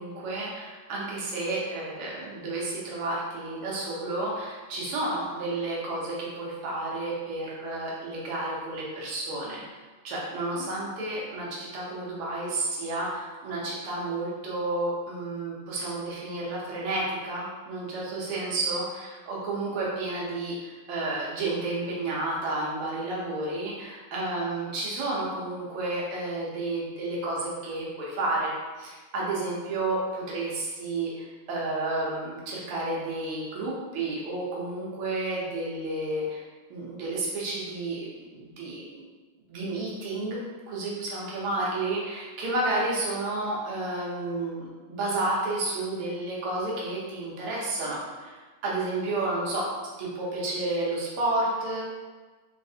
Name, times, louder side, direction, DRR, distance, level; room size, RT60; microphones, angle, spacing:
voice 1, 0.0-36.4 36.7-39.0 39.5-40.4 40.7-48.4 48.6-49.7 50.0-51.8, right 2 dB, 90° right, -5 dB, 1.8 m, -31 dB
4.4 x 3.2 x 2.7 m, 1.3 s
omnidirectional pair, 2.4 m